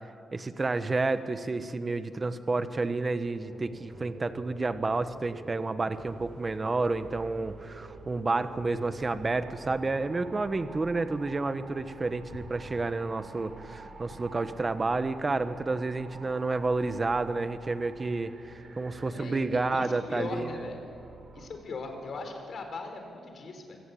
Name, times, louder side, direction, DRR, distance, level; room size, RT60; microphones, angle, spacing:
voice 1, 0.3-18.3 18.8-20.6, right 3 dB, 30° right, 11 dB, 1.1 m, -30 dB
sound 1, 2.6-21.5, right 3 dB, 45° right, 4.1 m, -49 dB
sound 2, 5.9-18.0, right 2 dB, 70° right, 6.7 m, -55 dB
voice 2, 19.1-20.9 21.3-23.8, left 3 dB, 60° left, 5 dB, 4.1 m, -39 dB
24.5 x 16.5 x 8.4 m, 2.5 s
cardioid pair, 115°, 0 cm